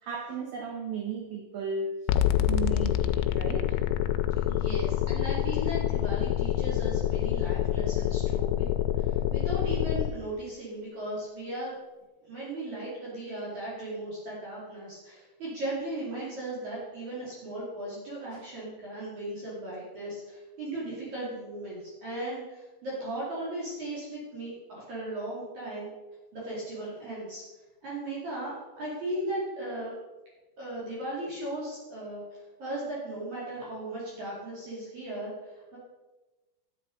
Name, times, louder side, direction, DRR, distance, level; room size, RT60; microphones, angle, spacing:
voice 1, 0.0-3.8 18.3-18.4, right 5 dB, 75° right, 3 dB, 2.2 m, -35 dB
sound 1, 2.1-10.1, left 12 dB, 90° left, 2.9 m, -27 dB
voice 2, 4.5-8.7 8.9-11.7 12.2-25.9 26.3-27.4 27.8-29.9 30.6-35.8, right 1 dB, 45° right, -6 dB, 3.3 m, -37 dB
10.0 x 8.7 x 5.0 m, 1.1 s
omnidirectional pair, 5.1 m